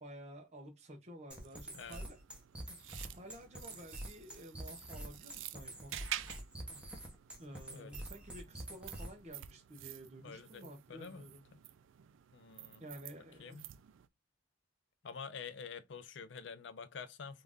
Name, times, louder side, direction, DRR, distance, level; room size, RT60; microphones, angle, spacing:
voice 1, 0.0-2.2 3.2-6.0 7.4-11.4 12.8-13.7, right 1 dB, 35° right, 0.7 m, -52 dB
sound 1, 1.3-9.3, right 1 dB, 5° right, 0.9 m, -46 dB
sound 2, 1.4-14.1, right 13 dB, 75° right, 0.3 m, -50 dB
voice 2, 10.2-11.6 12.3-12.8 13.4-13.7 15.0-17.4, left 6 dB, 65° left, 0.5 m, -48 dB
3.7 x 2.5 x 3.5 m
head